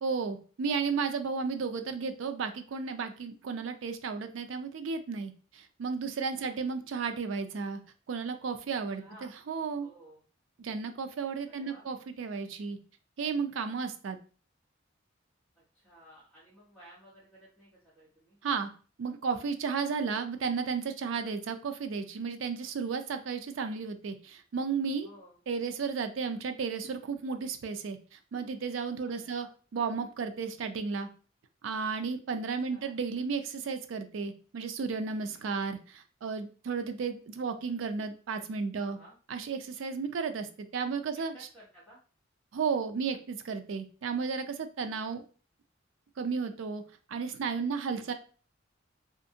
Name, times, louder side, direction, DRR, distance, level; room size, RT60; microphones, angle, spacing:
voice 1, 0.0-7.8 8.1-9.9 10.6-12.8 13.2-14.2 18.4-18.7 19.0-25.1 25.5-29.5 29.7-31.1 31.6-39.0 39.3-41.3 42.5-45.2 46.2-46.8 47.1-48.1, right 5 dB, 80° right, 8 dB, 0.4 m, -33 dB
voice 2, 9.0-9.4 9.8-10.2 11.5-11.9 15.5-18.4 25.0-25.4 29.1-29.5 32.7-33.0 38.8-39.2 41.1-42.0 47.6-48.0, right 1 dB, ahead, -12 dB, 1.1 m, -56 dB
2.5 x 2.5 x 2.7 m, 0.39 s
head